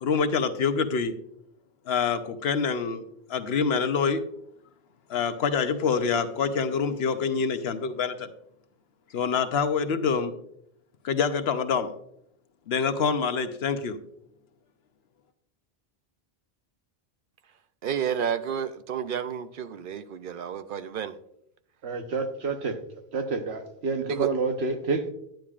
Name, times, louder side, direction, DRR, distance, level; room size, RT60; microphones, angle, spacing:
voice 1, 0.0-1.1 1.9-3.0 3.3-4.2 5.1-8.3 9.1-10.3 11.0-11.9 12.7-14.0, left 6 dB, 80° left, 1.0 m, -26 dB
voice 2, 17.8-21.2 24.1-24.3, right 8 dB, 65° right, 0.7 m, -31 dB
voice 3, 21.8-22.8 23.1-25.1, right 4 dB, 85° right, 1.2 m, -28 dB
10.5 x 10.0 x 2.4 m
omnidirectional pair, 1.0 m